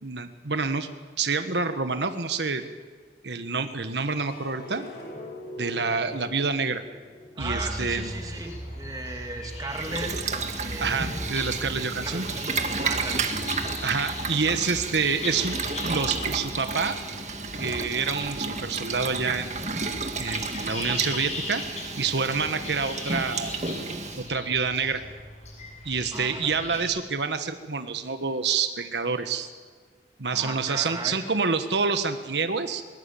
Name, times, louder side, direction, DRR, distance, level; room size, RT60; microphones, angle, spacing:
voice 1, 0.0-0.9 1.2-2.6 3.2-4.9 5.6-6.8 7.4-8.1 10.8-12.3 13.8-15.6 15.9-17.0 17.6-19.5 20.2-21.6 22.0-23.6 24.2-25.0 25.8-29.5 30.2-32.8, right 4 dB, 85° right, 8 dB, 1.4 m, -27 dB
sound 1, 4.2-10.6 11.0-11.7, left 1 dB, 65° left, 7.5 m, -45 dB
voice 2, 7.3-10.2 10.5-11.2 11.8-12.3 12.8-13.9 26.1-26.9 30.3-31.2, right 2 dB, 20° right, 2 dB, 2.9 m, -37 dB
sound 2, 7.4-26.8, left 1 dB, 40° left, 7.2 m, -38 dB
Boiling, 9.7-24.3, right 4 dB, 40° right, 1.9 m, -32 dB
22.0 x 20.5 x 8.5 m, 1.5 s
head